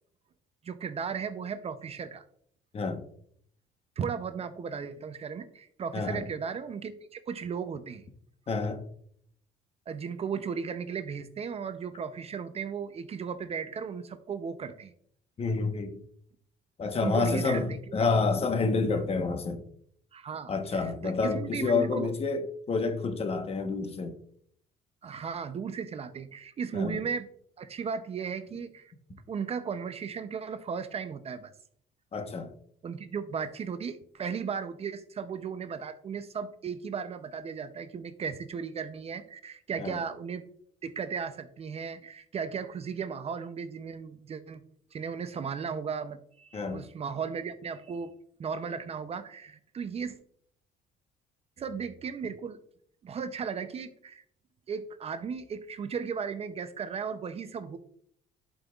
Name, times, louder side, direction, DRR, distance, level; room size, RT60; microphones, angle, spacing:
voice 1, 0.6-2.2 4.0-8.0 9.9-14.9 17.0-17.8 20.1-22.1 25.0-27.3 27.6-28.9 29.3-31.5 32.8-40.4 40.8-44.6 44.9-48.1 48.4-50.2 51.6-52.6 53.0-54.2 54.7-57.8, right 6 dB, 35° right, 0.5 m, -36 dB
voice 2, 5.9-6.2 8.5-8.8 15.4-15.9 16.8-19.6 20.5-24.1 26.7-27.0 32.1-32.5 39.8-40.0 46.5-46.8, left 4 dB, 35° left, 1.0 m, -28 dB
11.5 x 5.4 x 2.3 m
cardioid pair, 110°, 17 cm